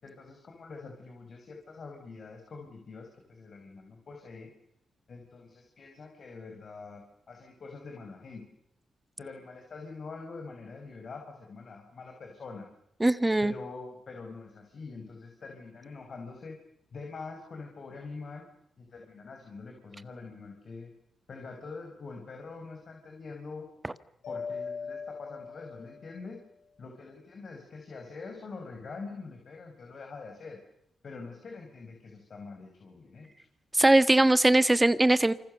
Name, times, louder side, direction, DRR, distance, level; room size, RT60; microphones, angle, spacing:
voice 1, 0.0-4.5 5.1-8.4 9.2-12.7 13.4-16.6 16.9-18.5 18.8-20.9 21.3-23.7 24.3-26.4 26.8-30.6 31.0-33.3, left 4 dB, 60° left, 3 dB, 5.4 m, -44 dB
voice 2, 13.0-13.5 33.7-35.3, right 2 dB, 20° right, 13 dB, 1.7 m, -21 dB
Mallet percussion, 24.2-26.3, left 5 dB, 80° left, 7.4 m, -39 dB
28.5 x 26.0 x 6.8 m, 0.77 s
supercardioid pair, 55°, 0 cm